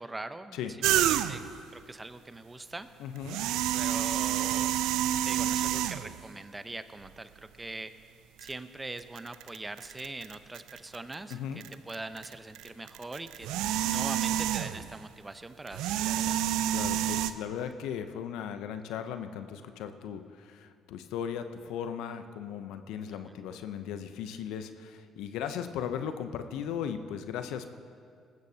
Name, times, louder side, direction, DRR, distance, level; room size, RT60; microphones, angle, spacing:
voice 1, 0.0-1.4 1.7-2.9 3.7-4.7 5.2-7.9 8.4-13.5 13.8-16.4, right 2 dB, 20° right, 11 dB, 0.8 m, -42 dB
sound 1, 0.8-1.6 3.2-6.2 7.0-7.1 8.4-8.5 9.0-11.3 11.6-15.0 15.7-17.3, right 12 dB, 80° right, 0.4 m, -29 dB
voice 2, 3.0-3.4 11.3-11.6 16.7-27.7, left 8 dB, 80° left, 9 dB, 0.7 m, -37 dB
19.5 x 14.5 x 2.8 m, 2.2 s
hypercardioid pair, 55°, 0 cm